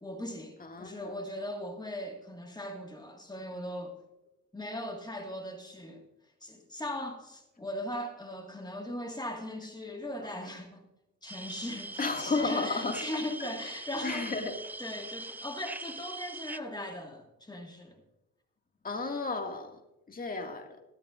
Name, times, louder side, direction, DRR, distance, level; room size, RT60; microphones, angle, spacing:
voice 1, 0.0-4.0 4.5-6.0 6.4-10.9 11.2-14.3 14.8-18.0, left 1 dB, 15° left, 1.7 m, -39 dB
voice 2, 0.6-1.1 10.2-10.4 12.0-13.2 13.6-13.7 14.0-14.6 18.8-19.8 20.1-20.8, left 3 dB, 30° left, 2.0 m, -33 dB
sound 1, 11.3-16.6, right 2 dB, 5° right, 0.3 m, -42 dB
22.5 x 8.6 x 2.5 m
cardioid pair, 90°, 30 cm